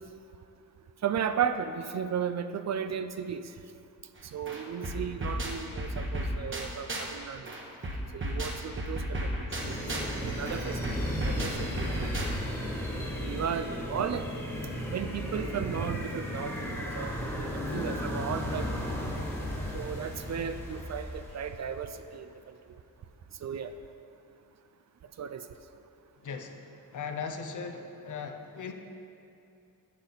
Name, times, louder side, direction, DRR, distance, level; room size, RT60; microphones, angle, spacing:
voice 1, 1.0-3.4 4.3-7.5 8.1-9.3 9.6-12.2 13.2-14.2 14.9-18.7 19.0-19.1 19.7-22.3 23.4-23.7 25.2-25.4, right 7 dB, 50° right, 10 dB, 0.4 m, -35 dB
sound 1, 4.2-4.3 4.5-7.2 7.5-12.6, right 1 dB, 35° right, 1.2 m, -34 dB
sound 2, 9.5-21.8, left 1 dB, 5° left, 1.6 m, -35 dB
voice 2, 26.2-28.7, left 5 dB, 55° left, 5 dB, 0.8 m, -38 dB
10.5 x 7.1 x 4.0 m, 2.7 s
cardioid pair, 105°, 36 cm